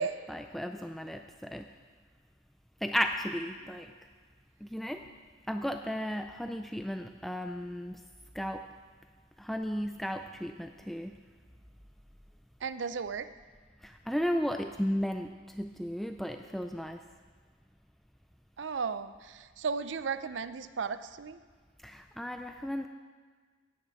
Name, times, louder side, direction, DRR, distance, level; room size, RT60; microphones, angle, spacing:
voice 1, 0.3-1.7 2.8-3.9 4.6-5.0 5.5-8.0 8.3-8.6 9.4-11.2 13.8-17.0 21.8-22.9, equal, ahead, 5 dB, 0.3 m, -34 dB
voice 2, 12.6-13.3 18.6-21.4, right 5 dB, 75° right, 13 dB, 0.5 m, -35 dB
10.0 x 9.1 x 7.5 m, 1.5 s
head